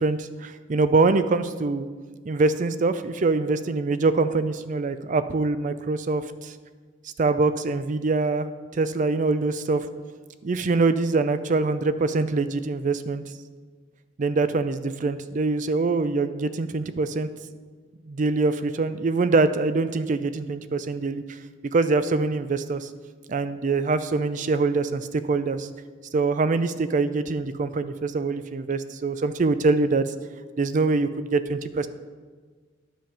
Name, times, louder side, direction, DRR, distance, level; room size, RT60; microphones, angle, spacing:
voice 1, 0.0-1.9 2.3-6.5 7.2-8.5 8.7-9.9 10.4-13.2 14.2-17.3 18.1-21.4 21.7-22.9 23.3-25.7 26.1-30.0 30.6-31.9, right 3 dB, 45° right, 12 dB, 0.4 m, -24 dB
10.5 x 5.1 x 7.0 m, 1.5 s
head